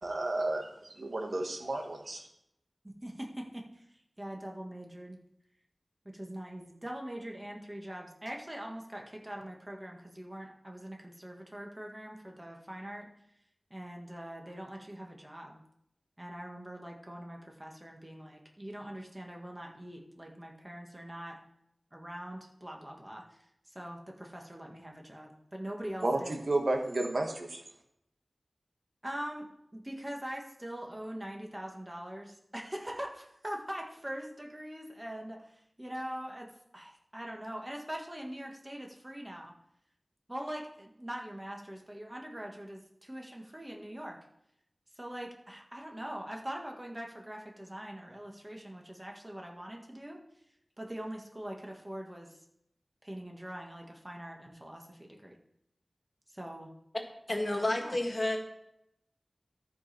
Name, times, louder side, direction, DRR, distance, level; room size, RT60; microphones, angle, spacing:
voice 1, 0.0-2.2 26.0-27.6, right 2 dB, 75° right, 4 dB, 1.4 m, -32 dB
voice 2, 2.8-5.2 6.1-13.1 13.7-15.6 16.2-21.4 21.9-26.4 29.0-29.5 29.7-39.5 40.3-44.2 44.9-50.2 50.8-52.4 53.0-55.4 56.3-56.7 57.5-58.0, right 1 dB, 20° right, 0 dB, 1.8 m, -43 dB
voice 3, 57.3-58.4, left 1 dB, 40° left, 2 dB, 1.8 m, -30 dB
13.5 x 5.4 x 4.4 m, 0.79 s
wide cardioid pair, 55°, 0 cm